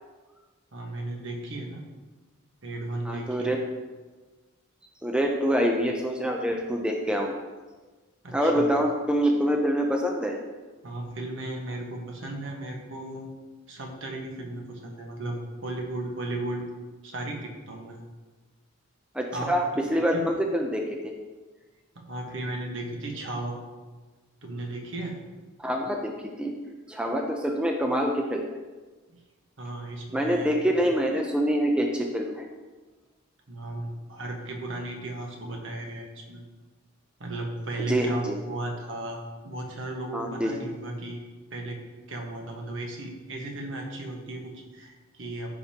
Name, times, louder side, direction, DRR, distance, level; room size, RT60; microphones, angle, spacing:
voice 1, 0.7-1.8 2.6-3.5 8.2-8.6 10.8-13.3 13.7-16.7 17.0-18.0 19.3-19.6 20.1-20.2 21.9-23.6 24.4-25.2 29.6-30.6 33.5-36.4 37.2-41.2 41.5-41.8 42.1-45.6, right 2 dB, 65° right, 1 dB, 1.4 m, -35 dB
voice 2, 3.1-3.6 5.0-7.3 8.3-10.4 19.1-19.6 19.9-21.1 25.6-26.1 26.4-26.5 26.9-28.5 30.1-32.5 37.9-38.4 40.1-40.5, equal, 5° right, 1 dB, 0.6 m, -25 dB
13.5 x 5.2 x 2.9 m, 1.3 s
head